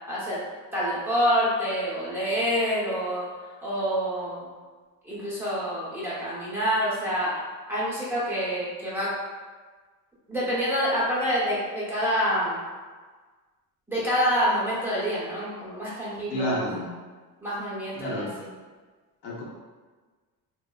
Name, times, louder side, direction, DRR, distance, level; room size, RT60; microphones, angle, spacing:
voice 1, 0.1-0.4 0.7-3.3 3.6-4.5 5.0-7.3 7.7-9.1 10.3-12.6 13.9-16.7 17.4-18.5, equal, 5° right, -10 dB, 0.7 m, -27 dB
voice 2, 16.3-16.9 18.0-18.3 19.2-19.4, equal, 80° left, -4 dB, 0.9 m, -29 dB
3.6 x 2.0 x 2.3 m, 1.4 s
cardioid pair, 140°, 40 cm